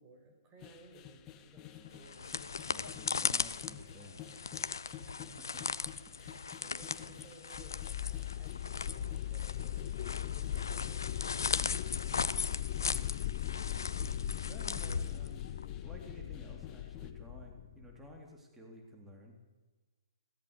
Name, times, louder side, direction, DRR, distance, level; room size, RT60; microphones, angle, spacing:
voice 1, 0.0-2.7 2.9-3.1 3.5-3.6 5.0-5.4 6.2-13.2 13.5-13.8 14.3-14.6 14.9-15.0, right 2 dB, 25° right, 4 dB, 5.9 m, -60 dB
sound 1, 0.6-17.1, left 10 dB, 20° left, 1.4 m, -53 dB
sound 2, 1.9-15.7, left 5 dB, 65° left, 0.9 m, -38 dB
voice 2, 2.7-4.7 5.2-5.6 14.5-19.5, equal, 10° right, 1 dB, 3.8 m, -53 dB
sound 3, 7.5-18.2, left 12 dB, 40° left, 0.7 m, -39 dB
22.0 x 17.5 x 8.4 m, 1.3 s
figure-of-eight pair, 130°, 2 cm